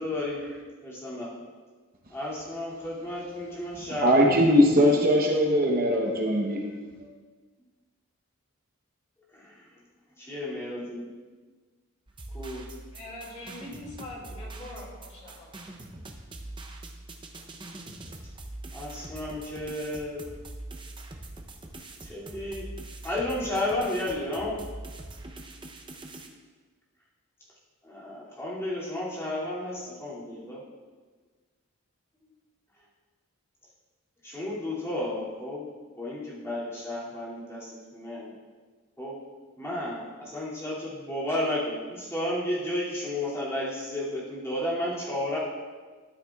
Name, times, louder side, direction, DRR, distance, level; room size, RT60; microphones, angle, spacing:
voice 1, 0.0-1.3 2.1-4.9 9.3-9.6 10.2-11.2 12.3-12.7 18.7-20.2 22.0-22.7 23.0-24.7 27.8-30.6 34.2-35.7 36.0-38.4 39.0-39.2 39.6-45.4, left 1 dB, 10° left, -8 dB, 2.5 m, -32 dB
voice 2, 3.9-6.6 7.0-7.1, equal, 40° right, 0 dB, 1.0 m, -21 dB
sound 1, 12.1-26.3, right 2 dB, 20° right, 0.7 m, -43 dB
voice 3, 12.9-15.5, left 1 dB, 30° left, -4 dB, 2.5 m, -42 dB
13.0 x 9.9 x 2.4 m, 1.4 s
head